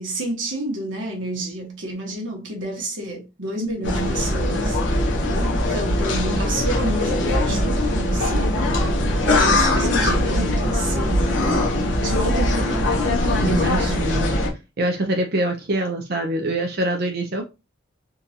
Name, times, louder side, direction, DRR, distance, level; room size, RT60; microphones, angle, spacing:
voice 1, 0.0-4.8 5.7-8.6 9.4-11.3 12.0-14.0, right 1 dB, 70° right, 1.2 m, -30 dB
sound 1, 3.8-14.5, left 1 dB, 70° left, 0.9 m, -21 dB
voice 2, 9.4-10.5 13.4-14.3 14.8-17.4, right 1 dB, 50° right, 0.6 m, -25 dB
3.7 x 2.6 x 2.8 m
head